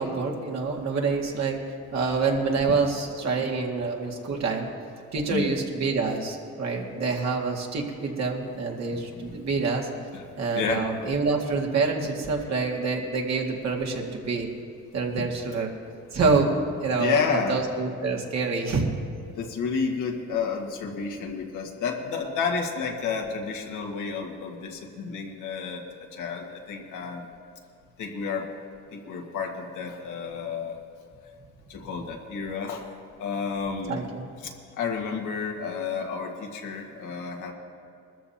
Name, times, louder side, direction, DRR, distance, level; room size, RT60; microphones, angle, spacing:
voice 1, 0.0-1.6 1.9-4.7 5.1-9.9 10.4-14.5 14.9-15.7 16.1-16.5 16.8-18.9 33.9-34.3, right 4 dB, 60° right, 0 dB, 2.1 m, -27 dB
voice 2, 3.2-4.4 5.3-5.6 9.1-9.4 10.1-10.3 10.5-10.9 15.2-15.3 17.0-17.6 19.4-25.8 26.1-27.3 28.0-28.5 28.9-30.8 31.7-32.9 33.2-34.0 34.4-37.5, left 5 dB, 85° left, 1 dB, 1.8 m, -31 dB
21.0 x 13.5 x 2.9 m, 2.5 s
cardioid pair, 90°, 30 cm